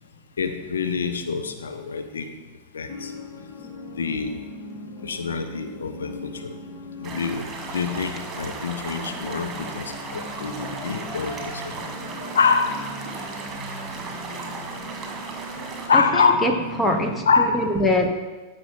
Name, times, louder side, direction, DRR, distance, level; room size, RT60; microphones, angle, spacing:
voice 1, 0.4-2.3 2.7-3.1 4.0-4.3 5.0-6.5 7.0-7.4 7.7-11.7 12.3-12.8 15.9-16.6 17.3-17.7, left 5 dB, 70° left, 7 dB, 0.8 m, -25 dB
sound 1, 2.9-17.1, equal, 35° left, 1.5 m, -39 dB
sound 2, 7.0-15.9, right 4 dB, 25° right, 1.9 m, -36 dB
voice 2, 10.8-12.2 15.9-16.5 16.8-18.1, left 1 dB, 10° left, 4 dB, 1.0 m, -25 dB
15.0 x 5.8 x 3.8 m, 1.2 s
figure-of-eight pair, 90°, 0 cm